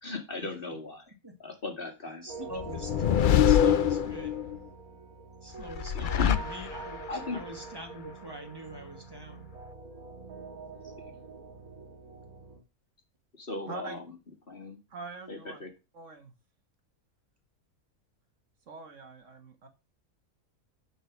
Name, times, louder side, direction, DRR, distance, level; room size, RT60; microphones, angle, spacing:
voice 1, 0.0-1.1 1.4-2.3 5.9-6.4 7.1-7.4 11.0-11.1 13.3-14.1 14.5-14.8 15.3-15.7, left 3 dB, 40° left, 4 dB, 2.0 m, -36 dB
voice 2, 2.2-4.3 5.4-9.5, right 1 dB, 15° right, 4 dB, 1.7 m, -44 dB
sound 1, 2.3-12.6, right 4 dB, 80° right, 2.1 m, -45 dB
sound 2, 2.6-4.6 5.6-7.1, left 9 dB, 75° left, 0.4 m, -25 dB
voice 3, 13.7-14.0 14.9-15.6 15.9-16.3 18.7-19.7, right 4 dB, 60° right, 6 dB, 1.6 m, -43 dB
10.0 x 4.6 x 5.9 m, 0.28 s
omnidirectional pair, 1.5 m